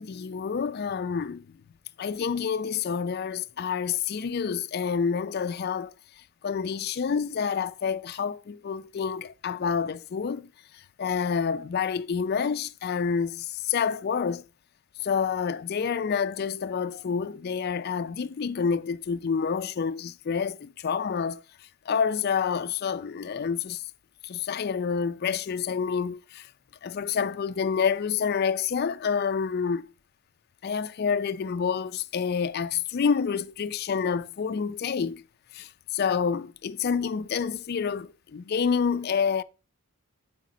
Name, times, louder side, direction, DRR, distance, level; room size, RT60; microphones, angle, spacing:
voice 1, 0.0-1.4 2.0-5.9 6.4-10.5 11.0-14.4 15.0-21.4 21.9-23.8 24.2-26.5 26.8-29.9 30.6-35.2 35.5-39.4, left 6 dB, 45° left, 0.3 m, -28 dB
8.3 x 5.0 x 3.9 m
head